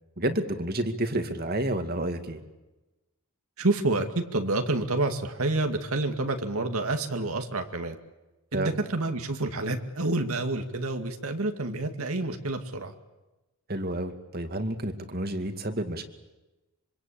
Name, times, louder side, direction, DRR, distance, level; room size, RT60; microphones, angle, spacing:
voice 1, 0.2-2.4 8.5-8.7 13.7-16.1, right 1 dB, 45° right, 7 dB, 2.4 m, -30 dB
voice 2, 3.6-8.0 8.5-12.9, right 2 dB, 75° right, 6 dB, 2.2 m, -28 dB
26.0 x 25.0 x 8.7 m, 1.1 s
head